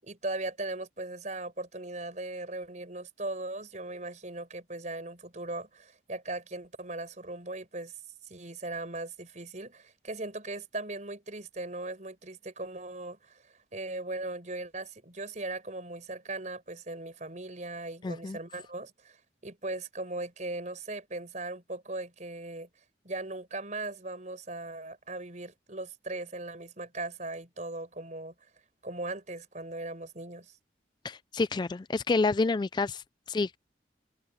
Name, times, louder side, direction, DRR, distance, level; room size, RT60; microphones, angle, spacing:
voice 1, 0.0-7.9 8.3-13.4 13.7-22.7 23.0-28.3 28.8-30.5, right 2 dB, 40° right, 5.4 m, -38 dB
voice 2, 18.0-18.4 31.0-33.6, left 3 dB, 25° left, 0.3 m, -29 dB
head